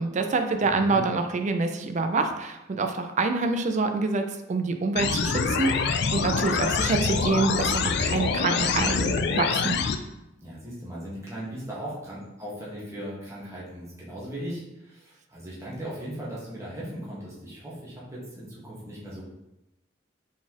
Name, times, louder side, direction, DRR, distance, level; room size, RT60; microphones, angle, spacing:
voice 1, 0.0-9.8, right 3 dB, 40° right, 6 dB, 0.4 m, -26 dB
voice 2, 0.6-1.0 10.4-19.2, right 1 dB, 15° right, -7 dB, 1.2 m, -38 dB
sound 1, 5.0-10.0, left 5 dB, 60° left, 0.3 m, -25 dB
4.1 x 4.0 x 2.9 m, 0.92 s
head